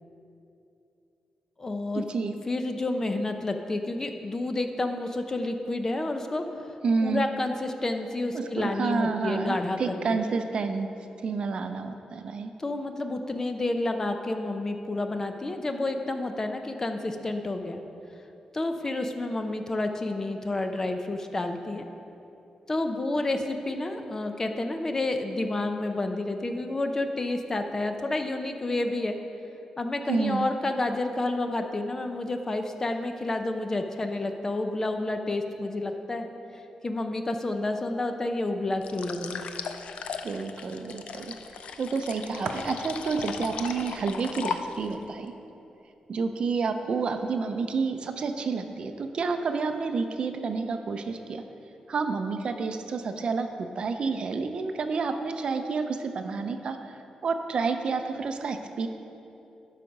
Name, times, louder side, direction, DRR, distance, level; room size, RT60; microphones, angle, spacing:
voice 1, 1.6-2.0 2.5-6.4 7.0-10.2 12.6-17.8 18.5-21.9 22.7-29.2 29.8-36.3 36.5-39.4, left 2 dB, 25° left, 6 dB, 0.6 m, -30 dB
voice 2, 6.8-7.2 8.3-10.9 11.2-12.5 30.1-30.5 40.2-41.3 41.8-45.3 46.1-51.4 51.9-56.8 57.2-58.9, right 4 dB, 50° right, 7 dB, 0.6 m, -29 dB
sound 1, 38.8-45.0, left 6 dB, 70° left, 0.4 m, -37 dB
12.0 x 5.0 x 5.3 m, 2.8 s
wide cardioid pair, 125°, 2 cm